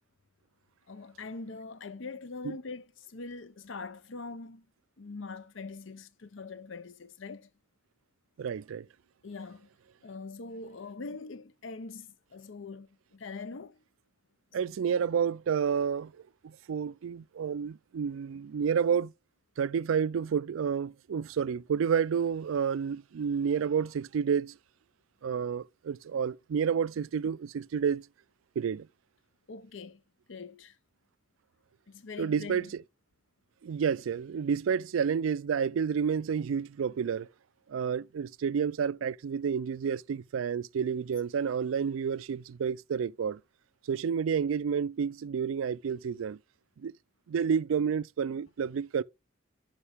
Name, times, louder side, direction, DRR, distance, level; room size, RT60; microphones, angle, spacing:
voice 1, 0.9-4.7 5.0-7.5 9.2-9.7 10.0-13.8 29.5-30.0 30.3-30.8 31.9-32.7, left 3 dB, 65° left, 0.7 m, -43 dB
voice 2, 8.4-8.9 14.5-16.1 16.4-19.1 19.6-24.5 25.2-28.1 28.6-28.9 32.2-32.7 33.6-37.3 37.7-43.4 43.9-46.4 46.8-46.9 47.3-49.0, right 7 dB, 80° right, 0.4 m, -30 dB
11.0 x 5.3 x 3.4 m
head